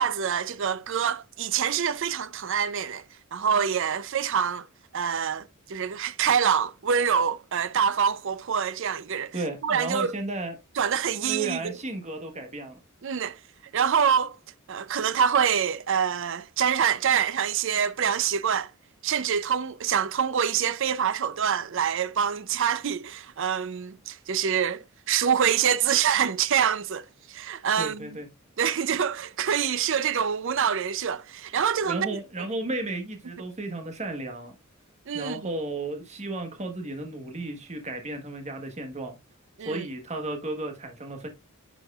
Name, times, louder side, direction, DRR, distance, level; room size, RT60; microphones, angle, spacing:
voice 1, 0.0-3.0 3.3-4.7 4.9-9.4 9.6-10.1 10.8-11.8 13.0-13.4 13.7-14.4 14.7-18.7 19.0-28.2 28.6-32.2 35.1-35.5 39.6-39.9, right 7 dB, 60° right, 0.5 m, -26 dB
voice 2, 9.3-10.6 11.2-12.8 27.8-28.3 31.8-34.5 35.1-39.2 39.6-41.3, right 2 dB, 30° right, 1.3 m, -34 dB
10.0 x 4.5 x 2.4 m
head